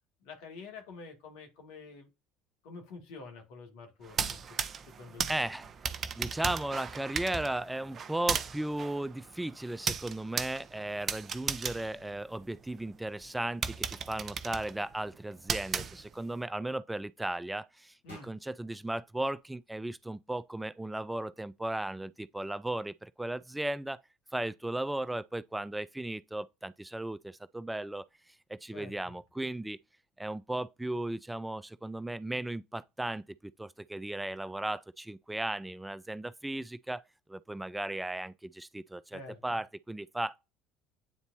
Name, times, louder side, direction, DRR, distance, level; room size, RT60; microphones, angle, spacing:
voice 1, 0.2-2.1 2.6-4.6 4.9-5.4 18.0-18.3 28.7-29.1 39.1-39.6, left 4 dB, 65° left, 2.0 m, -48 dB
sound 1, 4.0-12.8 13.2-13.3 13.6-16.4, right 6 dB, 40° right, 0.7 m, -36 dB
voice 2, 5.3-5.7 6.2-24.0 24.3-29.8 30.2-37.0 37.3-40.4, right 1 dB, 10° right, 0.3 m, -36 dB
sound 2, 18.1-20.2, left 1 dB, 85° left, 1.9 m, -59 dB
9.2 x 4.0 x 2.6 m
figure-of-eight pair, 65°, 0 cm